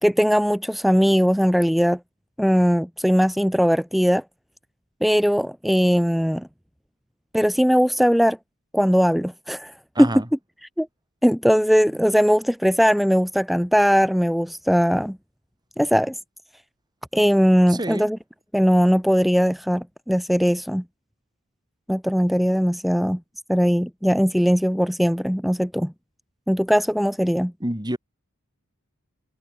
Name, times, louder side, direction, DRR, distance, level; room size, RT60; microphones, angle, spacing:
voice 1, 0.0-2.0 2.4-4.2 5.0-6.5 7.3-8.4 8.7-10.1 10.8-10.9 11.2-15.2 15.8-16.1 17.1-18.2 18.5-20.8 21.9-23.2 23.5-25.9 26.5-27.5, equal, ahead, 0.5 m, -19 dB
voice 2, 9.9-10.3 17.7-18.1 27.6-28.0, right 1 dB, 20° right, 3.4 m, -28 dB
head